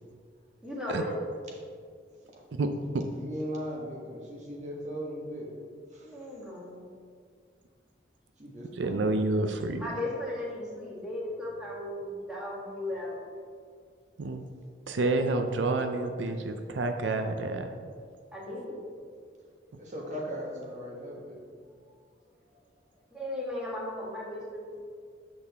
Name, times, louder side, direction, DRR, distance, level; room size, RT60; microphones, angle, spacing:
voice 1, 0.6-1.2 6.0-6.8 9.8-13.2 18.3-18.8 23.1-24.8, left 1 dB, 5° right, -7 dB, 1.7 m, -36 dB
voice 2, 3.1-5.5 5.9-6.2 8.4-9.5 14.2-14.3 19.8-21.4 21.8-21.9, equal, 40° right, -2 dB, 1.3 m, -38 dB
voice 3, 8.8-9.8 14.2-14.4 14.9-17.7, right 2 dB, 90° right, 7 dB, 0.5 m, -28 dB
8.0 x 6.3 x 3.5 m, 2.1 s
head